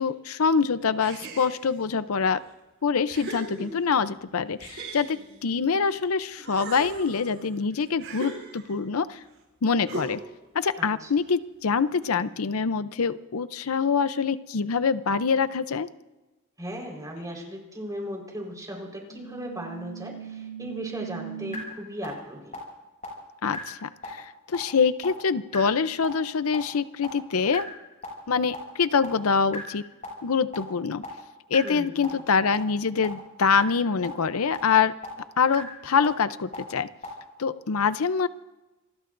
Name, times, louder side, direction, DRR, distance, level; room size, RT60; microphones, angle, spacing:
voice 1, 0.0-2.4 2.8-9.2 9.6-10.2 10.5-15.9 23.4-27.7 28.3-29.8 30.2-31.0 31.5-34.9 35.4-36.9 37.4-38.3, left 5 dB, 85° left, 13 dB, 0.6 m, -25 dB
sound 1, 1.0-1.9 2.5-2.6 3.1-4.1 4.6-6.0 6.4-8.9 9.9-10.4, right 2 dB, 70° right, 4.9 m, -39 dB
voice 2, 10.8-11.1 16.6-22.6 31.6-32.2, equal, 15° right, 1 dB, 4.4 m, -37 dB
sound 2, 19.1-21.6 22.0-22.1 22.5-22.6 23.0-23.1 23.5-23.6 24.0-24.1 24.5-24.6 25.0-25.1 25.5-25.6 26.0-26.1 26.5-26.6 27.0-27.1 27.5-27.6 28.0-28.1 28.5-28.6 29.0-29.1 29.5-29.6 30.0-30.1 30.5-30.6 31.0-31.1 31.5-31.6 32.0-32.1 32.5-32.6 33.0-33.1 33.5-33.6 34.0-34.1 34.5-34.6 35.0-35.1 35.5-35.6 36.0-36.1 36.5-36.6 37.0-37.1, right 1 dB, 35° left, 7.4 m, -37 dB
27.5 x 20.0 x 2.6 m, 1.1 s
head